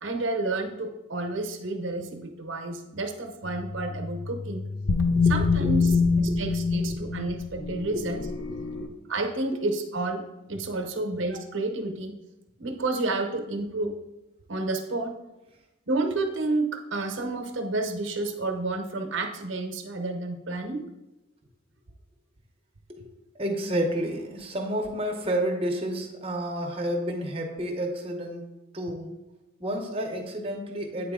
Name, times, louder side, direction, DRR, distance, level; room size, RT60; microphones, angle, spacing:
voice 1, 0.0-4.7 5.3-5.9 6.2-8.2 9.1-12.2 12.6-13.9 14.5-15.1 15.9-20.9, right 2 dB, 70° right, 4 dB, 0.8 m, -30 dB
sound 1, 3.4-8.9, left 4 dB, 60° left, 0.6 m, -26 dB
voice 2, 4.8-6.4 6.7-7.0 7.9-8.1 8.4-8.9 22.9-23.0 23.3-28.5 28.7-29.2 29.6-31.1, right 1 dB, 30° right, 2 dB, 0.8 m, -31 dB
8.4 x 4.1 x 3.6 m, 1.0 s
head